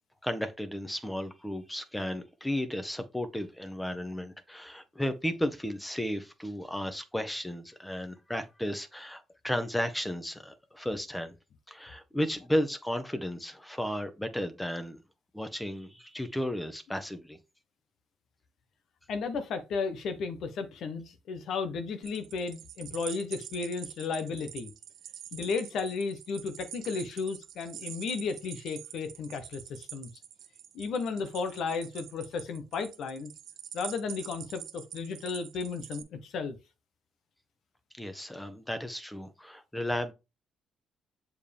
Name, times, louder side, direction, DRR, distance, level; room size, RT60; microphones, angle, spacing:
voice 1, 0.2-11.3 11.7-15.0 15.3-17.4 38.0-40.1, equal, 10° left, 1.2 m, -34 dB
voice 2, 19.1-24.7 25.3-30.1 30.7-33.3 33.7-36.6, left 5 dB, 70° left, 1.2 m, -34 dB
sound 1, 22.0-36.0, right 10 dB, 75° right, 1.0 m, -45 dB
7.3 x 4.6 x 3.5 m
cardioid pair, 90°, 0 cm